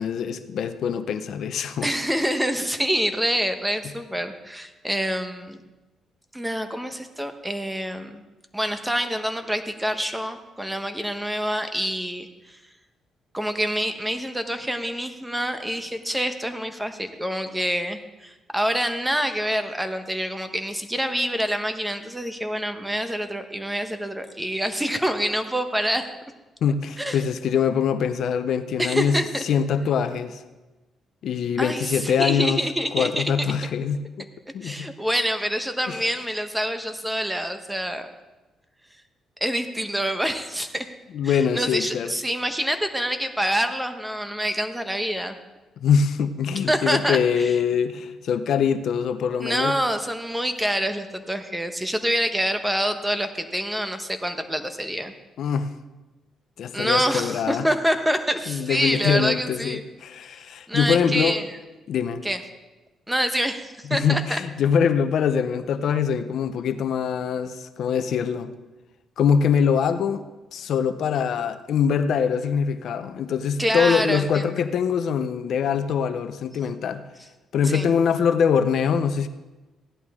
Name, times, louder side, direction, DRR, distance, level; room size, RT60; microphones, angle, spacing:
voice 1, 0.0-1.9 26.6-30.4 31.2-32.6 32.9-34.3 34.5-34.9 35.9-36.0 41.1-42.1 45.8-49.7 55.4-55.7 56.6-57.7 58.5-61.4 61.9-62.2 63.9-68.5 69.2-77.0 77.5-79.3, left 7 dB, 70° left, 11 dB, 0.6 m, -23 dB
voice 2, 1.8-5.6 6.3-8.2 8.5-12.6 13.3-26.1 27.0-27.2 28.8-29.4 31.6-33.2 34.6-38.1 39.4-40.9 41.2-45.3 46.7-47.5 49.4-55.1 56.7-59.8 60.7-61.4 62.2-62.4 63.1-64.4 73.6-74.4 77.6-77.9, equal, 5° right, 7 dB, 1.1 m, -26 dB
16.0 x 11.0 x 3.7 m, 1.1 s
cardioid pair, 90°, 0 cm